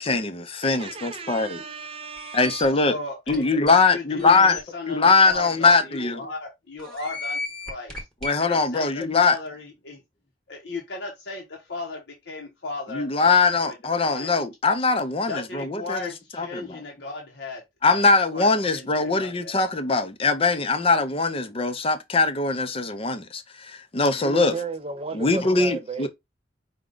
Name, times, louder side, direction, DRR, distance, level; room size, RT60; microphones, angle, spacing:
voice 1, 0.0-1.6 2.3-3.0 3.3-4.6 4.9-6.2 8.2-9.4 12.9-16.1 16.4-16.8 17.8-24.5 25.1-26.1, left 4 dB, 30° left, 0.5 m, -21 dB
voice 2, 0.6-2.7 24.2-26.1, right 4 dB, 30° right, 0.5 m, -34 dB
sound 1, 2.2-2.7 3.3-3.4 3.7-3.8 4.2-4.6 5.3-5.4 5.7-5.8 6.8-8.4, left 2 dB, 5° left, 1.1 m, -34 dB
voice 3, 2.8-3.4 3.9-7.4 7.7-8.0 8.4-10.0 10.5-13.3 13.6-13.7 14.0-14.4 15.3-17.6 17.9-18.0 18.3-19.6, left 3 dB, 70° left, 0.9 m, -36 dB
4.9 x 2.2 x 3.7 m
head